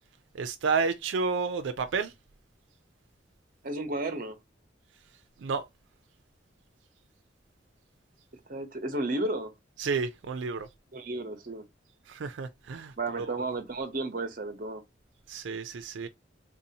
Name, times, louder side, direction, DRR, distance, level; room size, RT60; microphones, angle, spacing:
voice 1, 0.3-2.1 5.4-5.6 9.8-10.7 12.1-13.3 15.3-16.1, right 4 dB, 90° right, 0.4 m, -31 dB
voice 2, 3.6-4.4 8.5-9.5 10.9-11.6 13.0-14.8, right 2 dB, 50° right, 0.9 m, -33 dB
3.8 x 2.7 x 2.7 m
head